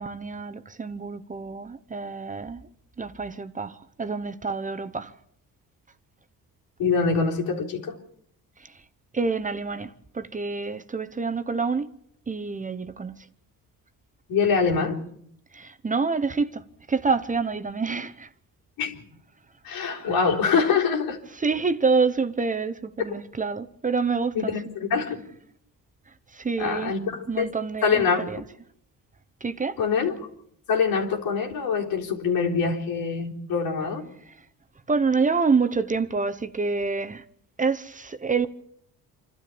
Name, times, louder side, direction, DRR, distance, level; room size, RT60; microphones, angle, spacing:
voice 1, 0.0-2.6 3.0-5.1 8.6-8.7 9.1-11.9 12.3-13.3 15.5-18.3 21.3-24.5 26.3-26.9 27.3-28.4 29.4-29.8 34.3-34.4 34.9-37.2 37.6-38.5, right 4 dB, 20° right, 0.9 m, -27 dB
voice 2, 6.8-8.0 14.3-15.0 18.8-19.0 19.6-21.2 24.3-25.3 26.6-27.5 27.8-28.2 29.8-30.1 30.7-34.0, left 5 dB, 85° left, 3.9 m, -24 dB
27.5 x 12.5 x 8.6 m
cardioid pair, 115°, 35 cm